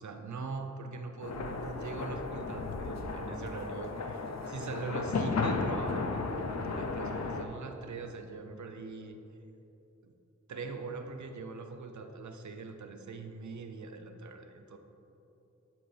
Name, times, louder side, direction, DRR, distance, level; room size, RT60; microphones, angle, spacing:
voice 1, 0.0-9.2 10.0-10.1 10.5-14.8, right 4 dB, 80° right, 7 dB, 0.6 m, -42 dB
sound 1, 1.2-7.4, left 3 dB, 65° left, 0.6 m, -34 dB
11.5 x 4.6 x 3.3 m, 3.0 s
wide cardioid pair, 55°, 29 cm